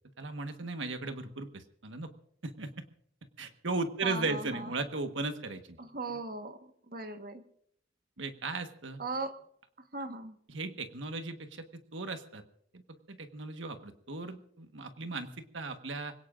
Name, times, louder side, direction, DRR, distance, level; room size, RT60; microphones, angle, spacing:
voice 1, 0.2-2.1 2.4-2.7 3.4-5.8 8.2-9.0 10.5-11.6 11.9-12.4 12.7-12.8 13.1-16.1, right 3 dB, 90° right, 7 dB, 1.5 m, -36 dB
voice 2, 4.0-4.7 5.8-7.4 9.0-9.4 9.9-10.4, right 3 dB, 50° right, 6 dB, 1.4 m, -38 dB
26.0 x 17.5 x 2.6 m, 0.67 s
head